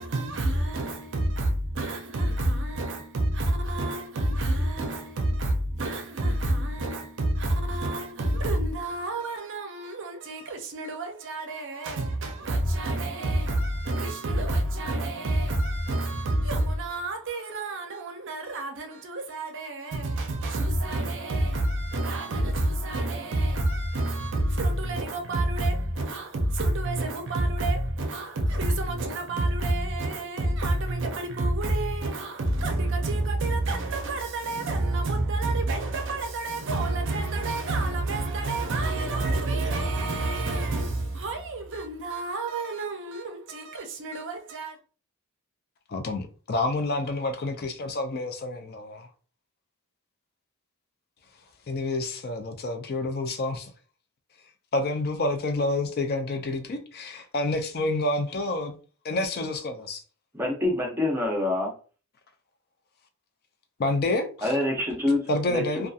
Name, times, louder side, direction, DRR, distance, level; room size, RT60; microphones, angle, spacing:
voice 1, 0.0-44.8, right 2 dB, 55° right, 0.5 m, -28 dB
voice 2, 45.9-49.1 51.7-53.7 54.7-58.8 59.0-60.0 63.8-64.5 65.3-65.9, left 2 dB, 45° left, 0.4 m, -28 dB
voice 3, 60.3-61.7 64.4-65.6, left 2 dB, 10° right, 0.7 m, -26 dB
2.7 x 2.3 x 2.4 m
head